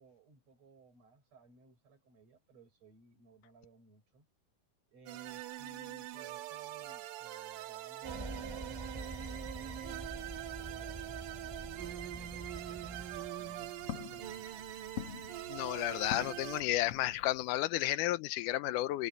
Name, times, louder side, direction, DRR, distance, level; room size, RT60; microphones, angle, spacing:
voice 1, 0.0-4.3 4.9-10.2 10.6-14.6, right 3 dB, 55° right, 6.5 m, -61 dB
sound 1, 5.1-16.6, right 14 dB, 90° right, 2.6 m, -43 dB
sound 2, 8.0-13.3, right 1 dB, 10° right, 4.1 m, -46 dB
Walk footsteps, 13.0-17.6, left 9 dB, 55° left, 1.9 m, -46 dB
voice 2, 15.5-19.1, left 15 dB, 85° left, 2.2 m, -32 dB
omnidirectional pair, 3.6 m